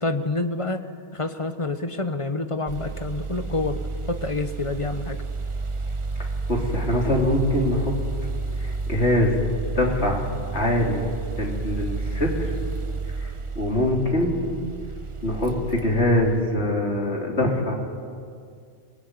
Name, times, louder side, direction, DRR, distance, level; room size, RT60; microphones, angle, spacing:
voice 1, 0.0-0.9 1.1-3.8 4.1-5.2, left 2 dB, 25° left, 8 dB, 1.3 m, -27 dB
sound 1, 2.7-16.4, right 3 dB, 30° right, 0.8 m, -31 dB
voice 2, 6.2-7.9 8.6-9.4 9.8-10.2 10.5-11.1 11.4-12.5 13.2-14.3 15.2-17.7, left 1 dB, 65° left, 0 dB, 4.0 m, -23 dB
25.0 x 21.0 x 9.8 m, 2.2 s
omnidirectional pair, 1.2 m